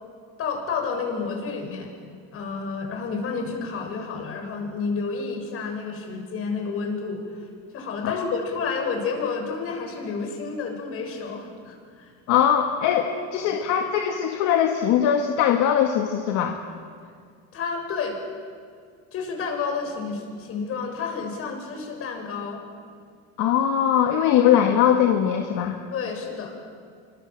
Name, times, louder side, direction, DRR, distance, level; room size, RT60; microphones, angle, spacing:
voice 1, 0.4-1.9 2.3-7.5 7.7-12.1 13.6-13.7 17.5-18.2 19.1-22.6 25.9-26.5, left 5 dB, 45° left, 3 dB, 7.0 m, -30 dB
voice 2, 12.3-16.6 23.4-25.8, left 9 dB, 65° left, 3 dB, 2.2 m, -21 dB
27.5 x 25.0 x 7.6 m, 2.1 s
cardioid pair, 135°, 32 cm